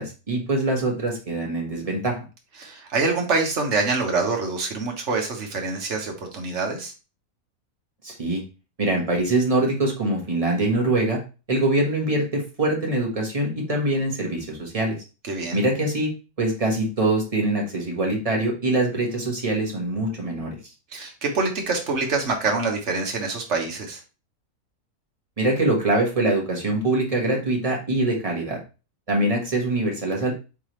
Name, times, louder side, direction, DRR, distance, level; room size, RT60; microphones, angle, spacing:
voice 1, 0.0-2.2 8.0-8.4 8.8-11.2 11.5-15.0 15.5-16.1 16.4-20.6 25.4-28.6 29.1-30.3, right 2 dB, 25° right, -1 dB, 1.3 m, -23 dB
voice 2, 2.6-6.9 15.2-15.6 20.9-24.0, right 3 dB, 55° right, 2 dB, 1.3 m, -25 dB
4.8 x 3.6 x 3.0 m, 0.32 s
omnidirectional pair, 1.6 m